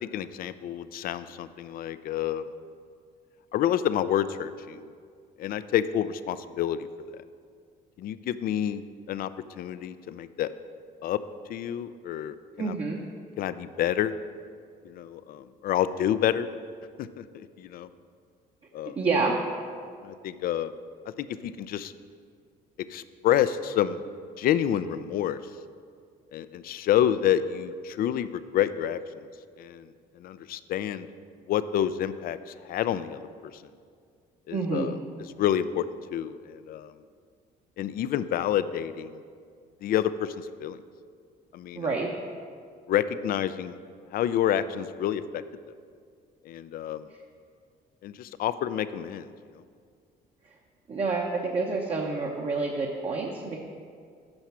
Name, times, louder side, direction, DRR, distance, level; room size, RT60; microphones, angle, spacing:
voice 1, 0.0-2.4 3.5-4.9 5.4-6.9 7.1-7.2 8.0-8.8 9.1-9.3 9.6-10.5 11.0-11.2 11.5-12.8 13.4-14.1 14.8-16.5 17.0-17.9 18.7-19.0 20.0-20.7 21.2-21.9 22.9-24.0 24.4-25.4 26.3-29.2 29.6-29.9 30.2-31.1 31.5-33.6 34.5-36.9 37.8-39.1 39.8-40.8 41.5-42.0 42.9-43.8 44.1-45.4 46.5-47.1 48.0-49.3, left 10 dB, 60° left, 14 dB, 0.4 m, -28 dB
voice 2, 12.6-13.0 19.0-19.3 34.5-34.9 41.8-42.1 50.9-53.6, right 4 dB, 35° right, -1 dB, 0.9 m, -28 dB
8.8 x 5.6 x 6.1 m, 2.1 s
cardioid pair, 110°, 17 cm